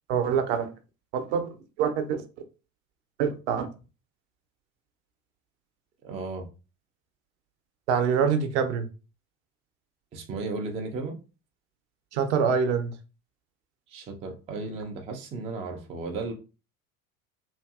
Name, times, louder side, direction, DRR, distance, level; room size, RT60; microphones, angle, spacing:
voice 1, 0.1-0.7 1.1-1.4 1.8-2.2 3.2-3.7 7.9-8.9 12.1-12.9, right 6 dB, 55° right, 7 dB, 0.6 m, -25 dB
voice 2, 6.0-6.5 10.1-11.2 13.9-16.3, right 3 dB, 15° right, 3 dB, 0.3 m, -35 dB
2.8 x 2.5 x 2.3 m, 0.32 s
figure-of-eight pair, 65°, 42 cm